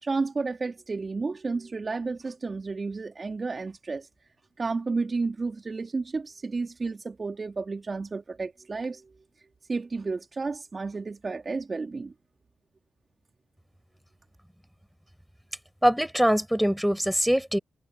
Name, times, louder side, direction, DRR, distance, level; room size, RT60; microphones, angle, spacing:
voice 1, 0.0-4.1 4.6-9.1 9.7-12.1, right 4 dB, 40° right, 2.4 m, -31 dB
voice 2, 15.8-17.6, equal, 5° right, 6.7 m, -23 dB
hypercardioid pair, 40°, 0 cm